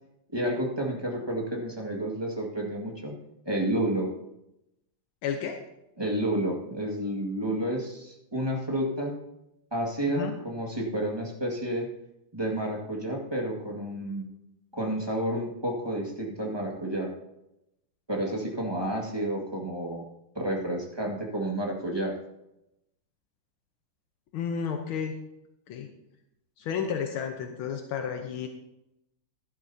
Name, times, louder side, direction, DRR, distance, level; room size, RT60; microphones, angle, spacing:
voice 1, 0.3-3.2 3.4-4.1 6.0-9.2 9.7-11.9 12.3-14.2 14.7-17.1 18.1-20.0 20.3-22.1, right 1 dB, 15° right, -1 dB, 1.7 m, -30 dB
voice 2, 5.2-5.6 10.2-10.3 24.3-25.1 25.7-25.9 26.6-28.5, left 7 dB, 80° left, 4 dB, 1.7 m, -31 dB
14.0 x 11.5 x 2.8 m, 0.86 s
omnidirectional pair, 2.2 m